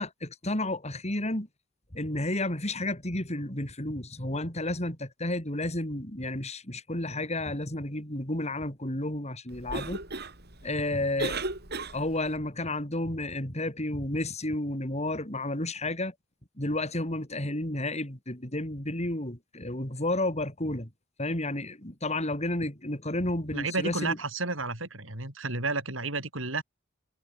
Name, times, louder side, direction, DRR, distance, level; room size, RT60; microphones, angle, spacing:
voice 1, 0.0-1.5 1.9-10.0 10.6-11.4 11.9-16.1 16.6-20.9 21.2-24.2, left 1 dB, 35° left, 5.5 m, -31 dB
Cough, 9.5-12.4, right 3 dB, 55° right, 7.3 m, -36 dB
voice 2, 23.5-26.6, right 3 dB, 75° right, 7.4 m, -31 dB
head